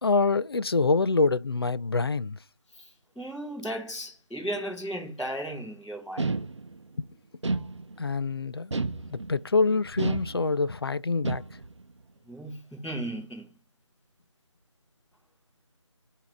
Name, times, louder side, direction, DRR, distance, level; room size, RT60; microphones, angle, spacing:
voice 1, 0.0-2.4 7.0-7.1 8.0-8.7 9.1-11.4, left 3 dB, 50° left, 0.4 m, -25 dB
voice 2, 3.1-6.3 12.2-13.5, right 1 dB, ahead, 1.1 m, -35 dB
sound 1, 6.2-6.9 7.4-8.2 8.7-9.5 10.0-10.8 11.2-11.8, right 3 dB, 70° right, 0.7 m, -31 dB
8.0 x 2.8 x 4.4 m
figure-of-eight pair, 165°, 16 cm